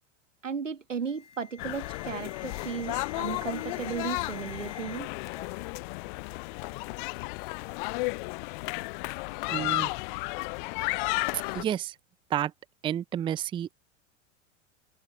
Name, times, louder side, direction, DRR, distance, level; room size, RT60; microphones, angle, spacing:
voice 1, 0.4-5.1, right 6 dB, 85° right, 1.6 m, -35 dB
Alarm, 1.0-5.0 5.3-5.7 6.6-6.7 7.3-7.5 9.3-9.6 11.4-11.6, left 6 dB, 75° left, 6.5 m, -49 dB
sound 1, 1.6-11.6, left 28 dB, 40° left, 0.5 m, -33 dB
voice 2, 9.5-9.9 11.5-12.0 12.3-12.5 12.8-13.7, right 10 dB, 15° right, 0.4 m, -30 dB
figure-of-eight pair, 85°, 37 cm